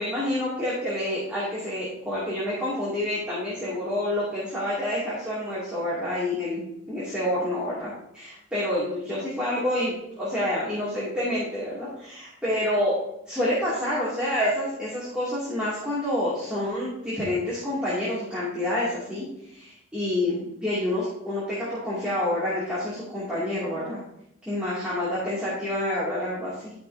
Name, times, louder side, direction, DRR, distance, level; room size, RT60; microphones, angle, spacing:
voice 1, 0.0-13.0 13.3-19.3 19.5-24.0 24.5-26.7, left 1 dB, 5° right, -9 dB, 2.4 m, -28 dB
13.0 x 5.5 x 2.7 m, 0.77 s
head